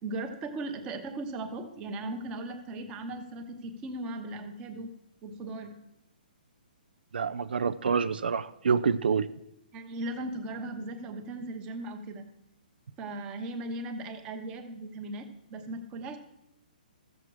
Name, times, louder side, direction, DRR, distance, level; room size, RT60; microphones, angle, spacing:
voice 1, 0.0-4.9 5.2-5.7 9.7-12.2 13.0-16.2, right 2 dB, 15° right, 5 dB, 1.0 m, -37 dB
voice 2, 7.1-9.3, right 6 dB, 85° right, 13 dB, 0.5 m, -27 dB
14.5 x 7.4 x 4.8 m, 0.82 s
hypercardioid pair, 165°, 5 cm